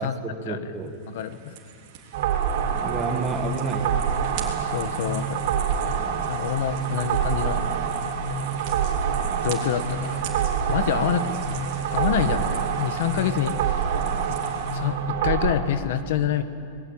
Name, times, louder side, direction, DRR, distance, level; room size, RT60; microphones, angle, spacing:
voice 1, 0.0-0.9 2.8-4.1, right 4 dB, 15° right, 5 dB, 1.6 m, -30 dB
sound 1, 0.9-14.8, right 7 dB, 40° right, 3.3 m, -41 dB
voice 2, 1.1-1.5 4.7-5.4 6.3-7.6 9.4-10.4 10.7-11.3 11.9-13.5 14.7-16.4, left 9 dB, 55° left, 10 dB, 1.3 m, -26 dB
sound 2, 2.1-15.5, right 7 dB, 55° right, 4.0 m, -26 dB
25.5 x 20.5 x 8.8 m, 2.2 s
supercardioid pair, 175°, 0 cm